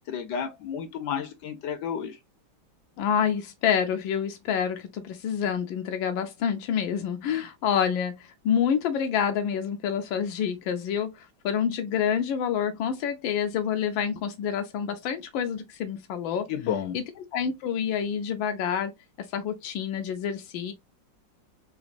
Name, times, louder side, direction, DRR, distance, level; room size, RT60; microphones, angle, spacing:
voice 1, 0.1-2.2 16.5-17.0, left 8 dB, 70° left, 1.1 m, -31 dB
voice 2, 3.0-16.5 16.9-17.0 17.3-18.9 19.3-20.7, left 8 dB, 90° left, 1.4 m, -27 dB
4.0 x 2.9 x 2.5 m
omnidirectional pair, 2.1 m